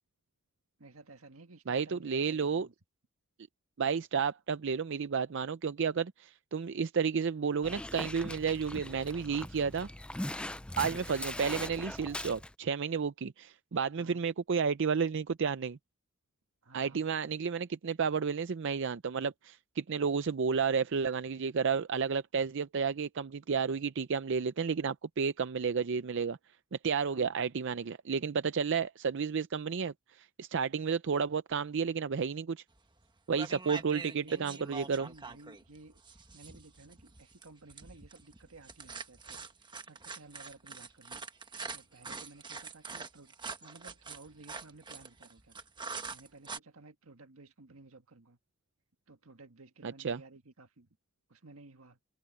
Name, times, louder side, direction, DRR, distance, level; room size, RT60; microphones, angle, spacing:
voice 1, 0.8-2.7 13.9-14.2 16.6-17.1 27.1-27.4 34.2-41.2 41.7-45.6 46.1-48.4 49.1-50.9 51.3-52.0, right 3 dB, 85° right, 1.7 m, -55 dB
voice 2, 1.7-2.7 3.8-9.9 10.8-15.8 16.7-26.4 26.8-32.6 33.3-35.1 49.8-50.2, right 6 dB, 60° right, 0.5 m, -32 dB
Dog, 7.6-12.5, left 1 dB, 5° left, 0.4 m, -40 dB
sound 1, 32.8-33.0 33.3-46.6, right 4 dB, 20° right, 1.3 m, -44 dB
head